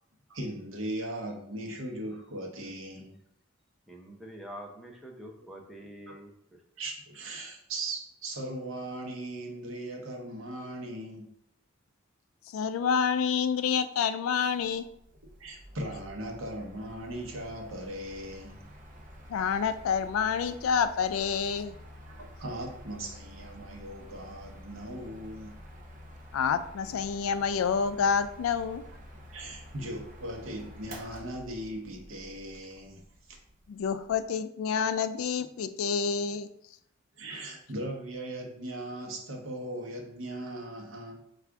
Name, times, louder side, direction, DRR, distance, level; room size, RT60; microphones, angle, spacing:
voice 1, 0.3-3.1 6.8-11.3 15.4-18.6 22.1-25.6 29.3-33.4 37.2-41.2, right 1 dB, 70° right, 1 dB, 0.9 m, -39 dB
voice 2, 3.9-6.3, equal, ahead, -1 dB, 0.6 m, -45 dB
voice 3, 12.5-14.9 19.3-21.8 26.3-28.8 33.7-36.5, left 6 dB, 85° left, 11 dB, 0.3 m, -28 dB
Mechanical fan, 14.6-34.2, equal, 40° right, 0.6 m, -49 dB
4.6 x 2.4 x 3.5 m, 0.74 s
head